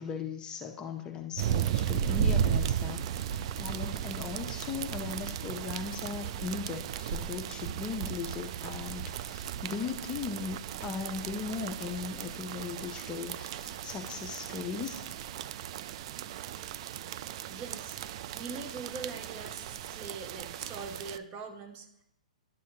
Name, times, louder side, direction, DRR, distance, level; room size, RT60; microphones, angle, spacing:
voice 1, 0.0-15.0, left 5 dB, 20° left, 3 dB, 0.6 m, -38 dB
sound 1, 1.4-21.2, right 9 dB, 50° right, 0.3 m, -35 dB
voice 2, 17.5-18.0 18.3-21.9, right 4 dB, 30° right, 6 dB, 1.0 m, -42 dB
11.0 x 6.3 x 2.8 m, 0.76 s
hypercardioid pair, 130°, 4 cm